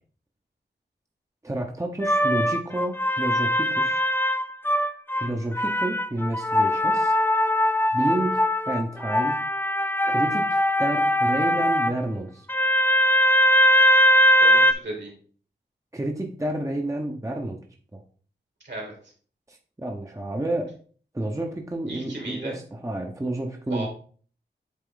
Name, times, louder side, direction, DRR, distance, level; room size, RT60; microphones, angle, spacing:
voice 1, 1.4-4.0 5.1-7.1 7.9-8.4 8.7-9.4 10.1-10.4 10.8-12.5 15.9-17.6 17.9-18.0 19.5-20.7 21.1-23.9, right 1 dB, 15° right, 2 dB, 0.9 m, -30 dB
sound 1, 2.0-5.3 5.6-11.9 12.5-14.7, equal, 10° left, 0.4 m, -21 dB
voice 2, 14.4-15.1 18.6-18.9 21.9-22.6 23.7-23.9, right 2 dB, 65° right, 0 dB, 2.7 m, -35 dB
8.3 x 3.7 x 3.9 m, 0.44 s
wide cardioid pair, 90°, 19 cm